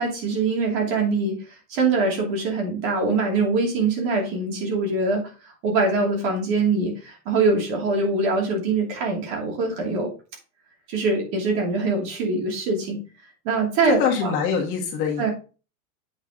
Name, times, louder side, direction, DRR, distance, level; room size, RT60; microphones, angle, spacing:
voice 1, 0.0-10.1 10.9-13.0 13.4-14.3 15.2-15.3, right 3 dB, 45° right, 0 dB, 2.7 m, -23 dB
voice 2, 13.8-15.3, left 6 dB, 30° left, -1 dB, 1.7 m, -24 dB
8.1 x 5.2 x 3.7 m, 0.35 s
supercardioid pair, 175°, 43 cm